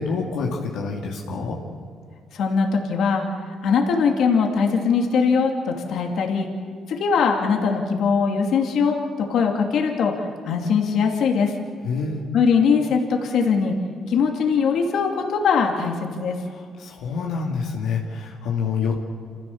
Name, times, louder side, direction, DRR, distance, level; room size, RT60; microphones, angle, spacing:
voice 1, 0.0-1.6 11.8-12.2 16.5-19.0, left 5 dB, 90° left, -2 dB, 2.3 m, -27 dB
voice 2, 2.3-3.2 3.6-6.5 6.9-11.6 12.3-13.8 14.1-16.4, left 5 dB, 70° left, 2 dB, 2.6 m, -21 dB
27.5 x 15.0 x 7.2 m, 2.1 s
cardioid pair, 90°, 0 cm